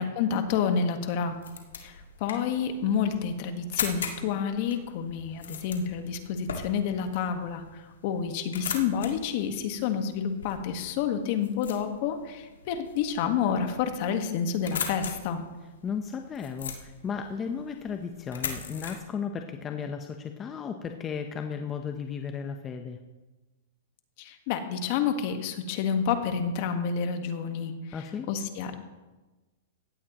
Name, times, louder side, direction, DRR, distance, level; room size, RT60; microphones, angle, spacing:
voice 1, 0.0-1.3 1.8-15.4 24.2-28.0 28.3-28.8, left 7 dB, 50° left, 6 dB, 1.6 m, -29 dB
sound 1, 1.1-19.0, left 6 dB, 85° left, 2.0 m, -40 dB
voice 2, 15.8-23.0 27.9-28.3, left 6 dB, 20° left, 5 dB, 0.9 m, -35 dB
16.5 x 13.5 x 3.1 m, 1.2 s
hypercardioid pair, 130°, 0 cm